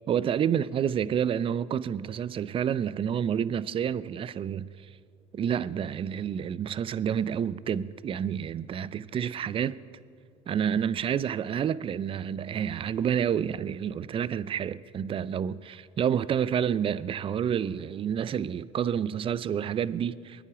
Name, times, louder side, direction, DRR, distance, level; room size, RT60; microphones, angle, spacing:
voice 1, 0.1-4.7 5.3-9.8 10.5-20.4, right 8 dB, 30° right, 0.4 m, -29 dB
23.0 x 10.0 x 5.0 m
supercardioid pair, 90°, 17 cm